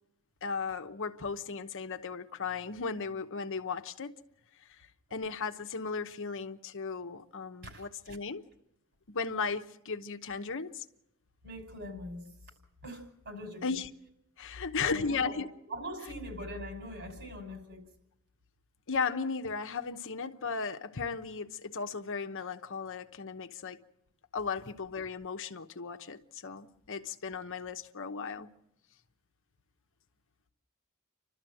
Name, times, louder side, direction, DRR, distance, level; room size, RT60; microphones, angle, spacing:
voice 1, 0.4-4.1 5.1-8.4 9.1-10.8 13.6-13.9 14.4-15.5 18.9-23.8 24.3-28.5, left 5 dB, 60° left, 1.0 m, -36 dB
voice 2, 7.6-8.2 11.4-12.2 12.8-13.8 14.7-17.8, equal, 55° right, 5.6 m, -42 dB
29.5 x 13.0 x 7.7 m
head